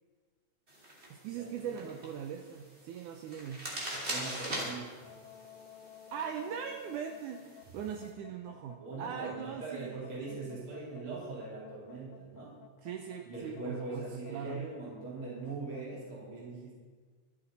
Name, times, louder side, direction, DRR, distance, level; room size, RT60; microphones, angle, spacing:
sound 1, 0.7-8.1, right 1 dB, 20° right, 2.7 m, -43 dB
voice 1, 1.1-3.7 6.1-10.0 10.3-10.6 12.8-14.7, right 8 dB, 75° right, 5 dB, 2.0 m, -40 dB
voice 2, 4.1-5.1 8.8-12.6 13.3-16.7, right 3 dB, 40° right, -6 dB, 4.5 m, -41 dB
sound 2, 5.0-15.9, left 10 dB, 90° left, 2.4 m, -54 dB
24.5 x 8.4 x 4.1 m, 1.5 s
omnidirectional pair, 3.9 m